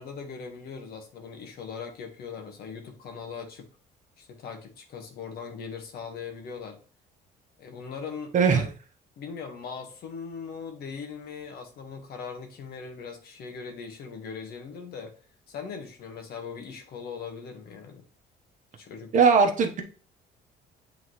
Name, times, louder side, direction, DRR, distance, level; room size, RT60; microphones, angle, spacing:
voice 1, 0.0-3.7 4.2-6.8 7.6-8.7 9.2-15.1 15.5-18.0 18.8-19.1, left 5 dB, 65° left, 5 dB, 1.4 m, -40 dB
voice 2, 19.1-19.8, right 5 dB, 50° right, 5 dB, 1.1 m, -19 dB
7.8 x 3.9 x 3.1 m, 0.39 s
cardioid pair, 110°, 17 cm